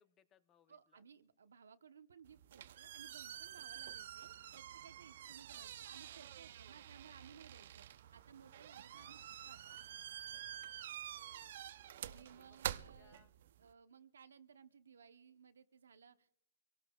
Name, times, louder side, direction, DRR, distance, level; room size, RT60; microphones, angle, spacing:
voice 1, 0.0-1.0 5.5-5.7 8.9-9.3 11.1-11.6 12.3-13.3, left 9 dB, 20° left, 13 dB, 0.6 m, -71 dB
voice 2, 0.7-9.8 12.0-13.2 13.6-16.4, right 7 dB, 85° right, 10 dB, 0.9 m, -60 dB
sound 1, 2.2-13.7, right 11 dB, 55° right, 0.5 m, -48 dB
25.5 x 17.5 x 2.3 m, 0.70 s
hypercardioid pair, 150°, 0 cm